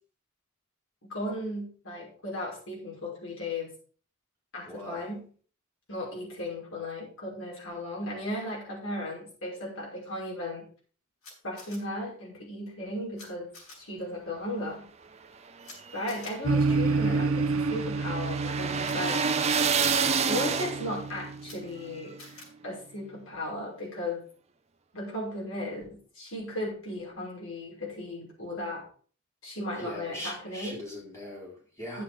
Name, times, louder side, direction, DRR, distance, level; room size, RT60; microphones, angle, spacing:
voice 1, 1.0-3.7 4.5-5.3 5.9-10.7 11.4-13.5 13.8-14.9 15.9-19.2 20.3-22.2 22.6-24.2 24.9-28.9 29.4-30.8 31.9-32.0, left 1 dB, 70° left, -3 dB, 5.6 m, -36 dB
voice 2, 4.7-5.1 16.7-17.4 29.8-32.0, equal, 15° left, -3 dB, 4.0 m, -41 dB
Camera, 11.2-11.8 13.2-13.3 13.5-13.8 15.6-15.8 16.1-16.3 18.8-18.9 19.5-19.7 21.4-21.6 22.2-22.5, left 3 dB, 85° left, 5.3 m, -47 dB
sound 1, 15.6-21.1, right 5 dB, 30° right, 0.8 m, -29 dB
sound 2, 16.4-22.1, right 3 dB, 80° right, 0.8 m, -30 dB
10.5 x 7.5 x 5.0 m, 0.43 s
head